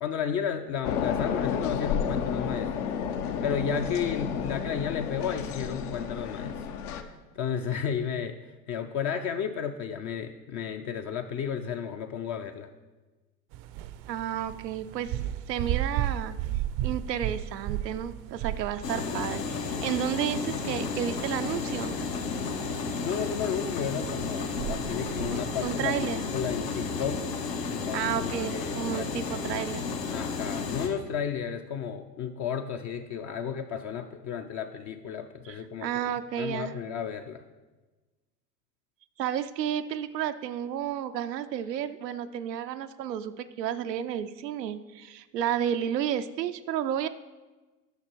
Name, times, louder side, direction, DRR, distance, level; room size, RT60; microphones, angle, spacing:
voice 1, 0.0-2.9 3.4-8.4 8.7-12.7 23.0-27.3 27.7-29.1 30.1-36.0 36.4-37.4, left 7 dB, 40° left, 6 dB, 0.5 m, -33 dB
sound 1, 0.8-7.0, left 7 dB, 65° left, 0.9 m, -31 dB
sound 2, 13.5-27.2, right 12 dB, 45° right, 0.5 m, -36 dB
voice 2, 14.1-15.2 15.5-16.4 16.8-21.9 25.3-26.2 27.9-29.9 35.5-36.7 39.2-47.1, right 10 dB, 90° right, 9 dB, 0.6 m, -32 dB
sound 3, 18.8-30.9, left 5 dB, 80° left, 1.4 m, -32 dB
9.6 x 5.8 x 4.5 m, 1.2 s
hypercardioid pair, 85°, 48 cm